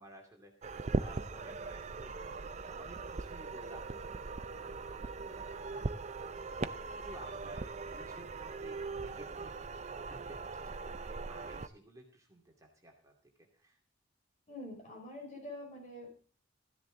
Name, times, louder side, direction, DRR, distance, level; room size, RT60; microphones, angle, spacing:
voice 1, 0.0-5.9 6.4-6.5 6.9-9.7 10.1-13.1 13.4-13.8, right 1 dB, 15° right, 1 dB, 2.5 m, -55 dB
sound 1, 0.6-11.7, right 3 dB, 35° right, 0.5 m, -40 dB
voice 2, 14.5-16.3, left 1 dB, 35° left, 0 dB, 5.0 m, -46 dB
14.5 x 10.5 x 3.9 m, 0.44 s
head